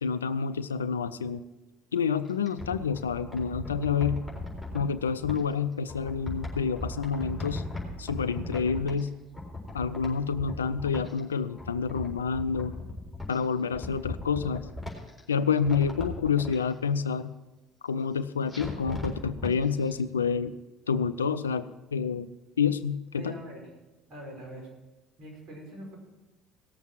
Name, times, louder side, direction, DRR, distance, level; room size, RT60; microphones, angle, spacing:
voice 1, 0.0-1.4 1.9-4.2 4.7-7.6 8.0-9.1 9.7-12.8 13.3-14.6 15.3-17.4 17.8-20.5 20.9-22.3 22.6-23.3, left 6 dB, 85° left, 13 dB, 0.4 m, -28 dB
sound 1, 2.2-5.4 5.9-9.1 9.3-11.2 11.5-13.4 13.7-15.2 15.6-16.6 18.5-19.5 19.9-20.0, left 2 dB, ahead, 4.2 m, -38 dB
voice 2, 23.2-23.6 24.1-24.7 25.2-26.0, equal, 50° right, -1 dB, 5.1 m, -43 dB
17.5 x 7.3 x 6.1 m, 1.1 s
hypercardioid pair, 60°, 0 cm